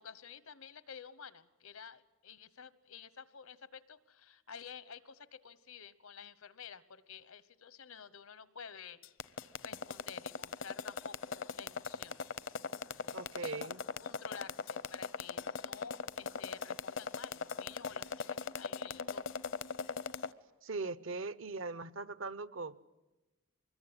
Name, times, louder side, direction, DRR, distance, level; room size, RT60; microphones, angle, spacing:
voice 1, 0.0-9.0 9.4-12.2 13.4-13.7 14.0-19.4, left 7 dB, 80° left, 1.1 m, -51 dB
sound 1, 9.0-20.3, left 5 dB, 60° left, 0.8 m, -39 dB
voice 2, 13.1-13.8 20.6-22.9, right 3 dB, 65° right, 0.9 m, -40 dB
24.5 x 21.5 x 9.9 m
head